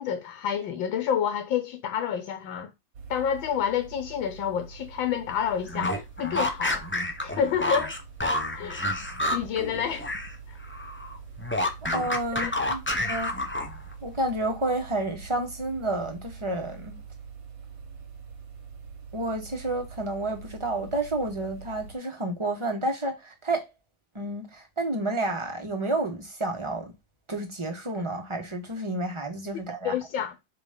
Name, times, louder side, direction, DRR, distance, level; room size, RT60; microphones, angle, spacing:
voice 1, 0.0-2.7 3.1-6.8 7.2-8.0 8.5-9.0 9.3-10.1 10.5-10.6 12.4-12.6 29.8-30.3, left 8 dB, 85° left, 1.6 m, -29 dB
sound 1, 2.9-21.9, right 6 dB, 75° right, 2.3 m, -45 dB
sound 2, 5.6-10.3 10.6-13.9, left 1 dB, 15° left, 0.3 m, -29 dB
voice 2, 11.9-13.3 14.0-17.0 19.1-23.7 24.1-26.9 27.3-29.9, right 2 dB, 15° right, 1.3 m, -30 dB
5.0 x 4.1 x 5.1 m
omnidirectional pair, 2.1 m